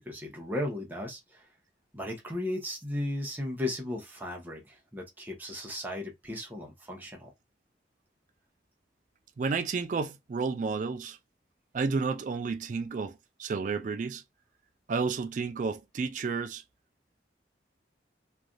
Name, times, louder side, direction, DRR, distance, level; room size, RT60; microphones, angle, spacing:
voice 1, 0.0-1.5 1.9-7.3, left 1 dB, 10° right, 0.8 m, -36 dB
voice 2, 9.4-11.2 11.7-14.2 14.9-16.6, right 4 dB, 45° right, 0.3 m, -31 dB
3.2 x 2.6 x 2.3 m
head